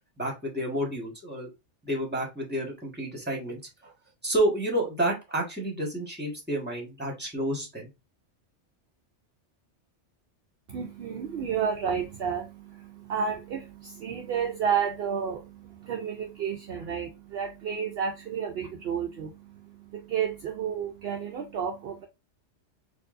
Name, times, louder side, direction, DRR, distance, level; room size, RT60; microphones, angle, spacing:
voice 1, 0.2-1.5 1.8-3.9 4.2-7.9, right 1 dB, 10° right, 1.4 m, -30 dB
voice 2, 10.7-22.1, right 7 dB, 65° right, 0.7 m, -31 dB
4.4 x 2.7 x 2.5 m
omnidirectional pair, 1.2 m